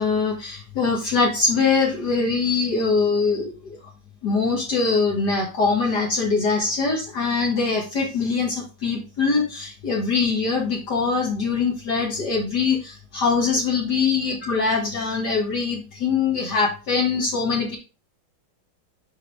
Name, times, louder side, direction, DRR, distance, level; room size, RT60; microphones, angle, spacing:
voice 1, 0.0-3.8 4.2-17.8, left 4 dB, 55° left, -1 dB, 2.2 m, -23 dB
7.2 x 5.0 x 3.4 m, 0.32 s
omnidirectional pair, 2.2 m